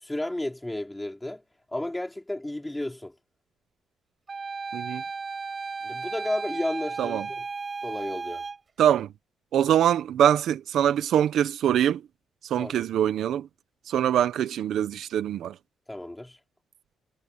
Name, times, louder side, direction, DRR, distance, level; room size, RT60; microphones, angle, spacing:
voice 1, 0.0-1.4 1.7-3.1 5.8-7.5 7.8-8.4 12.6-12.7 15.9-16.4, left 1 dB, 10° left, 4.8 m, -32 dB
Wind instrument woodwind instrument, 4.3-8.6, right 4 dB, 35° right, 5.6 m, -34 dB
voice 2, 8.8-9.1 9.5-12.0 12.5-13.5 13.9-15.5, right 10 dB, 75° right, 1.1 m, -23 dB
cardioid pair, 90°, 0 cm